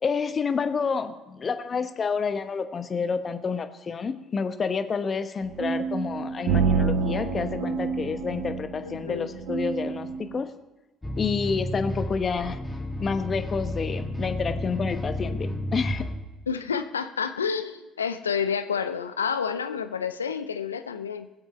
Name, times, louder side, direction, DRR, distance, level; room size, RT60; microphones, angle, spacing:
voice 1, 0.0-10.5 11.2-12.6 13.0-16.0, left 5 dB, 35° left, 9 dB, 1.1 m, -29 dB
sound 1, 5.4-10.4, right 5 dB, 70° right, 0.9 m, -28 dB
voice 2, 8.8-9.3 16.5-21.3, left 6 dB, 85° left, 10 dB, 0.6 m, -29 dB
sound 2, 11.0-16.2, left 1 dB, 15° left, 2.6 m, -32 dB
20.5 x 7.9 x 4.3 m, 1.1 s
figure-of-eight pair, 55°, 0 cm